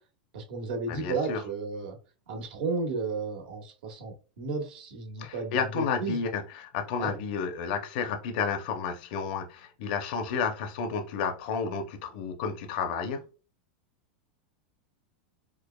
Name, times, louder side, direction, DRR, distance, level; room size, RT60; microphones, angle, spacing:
voice 1, 0.3-2.0 2.3-6.2 7.0-7.2, right 4 dB, 70° right, 1.4 m, -33 dB
voice 2, 0.9-1.4 5.2-13.2, left 6 dB, 55° left, 0.6 m, -31 dB
4.6 x 2.4 x 2.3 m
supercardioid pair, 150°, 6 cm